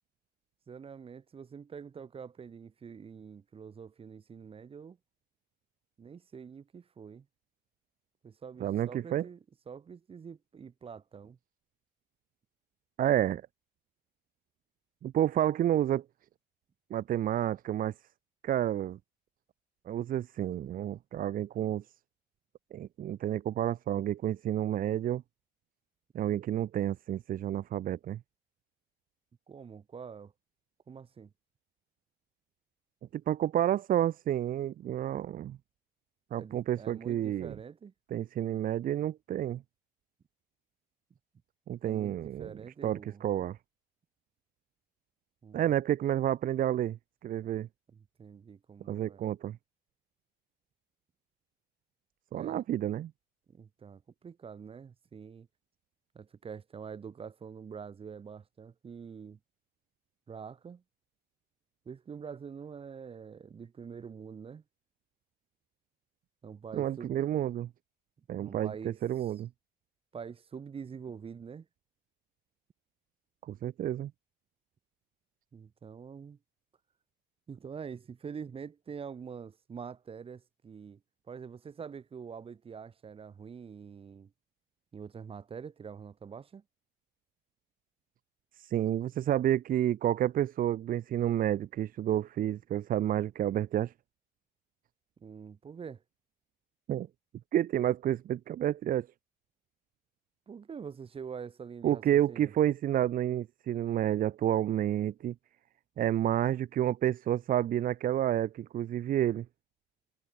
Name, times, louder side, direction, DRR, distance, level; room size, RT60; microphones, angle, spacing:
voice 1, 0.7-5.0 6.0-7.3 8.2-11.4 29.5-30.3 30.9-31.3 36.4-37.9 41.9-43.2 45.4-45.7 47.9-49.3 52.3-52.6 53.5-55.5 56.1-59.4 60.3-60.8 61.9-64.6 66.4-67.2 68.4-69.1 70.1-71.7 75.5-76.4 77.5-81.0 81.3-84.3 84.9-86.6 95.2-96.0 100.5-102.5, right 6 dB, 35° right, 1.7 m, -45 dB
voice 2, 8.6-9.3 13.0-13.4 15.0-16.0 16.9-17.9 18.4-19.0 19.9-21.8 22.7-25.2 26.1-28.2 33.1-35.6 36.3-37.5 38.1-39.6 41.7-42.5 42.8-43.6 45.5-47.0 47.2-47.7 48.9-49.6 52.3-53.1 66.7-67.7 68.3-68.7 69.0-69.5 73.4-74.1 88.7-93.9 96.9-97.1 97.5-99.1 101.8-105.3 106.0-109.4, right 11 dB, 55° right, 1.2 m, -30 dB
cardioid pair, 110°, 17 cm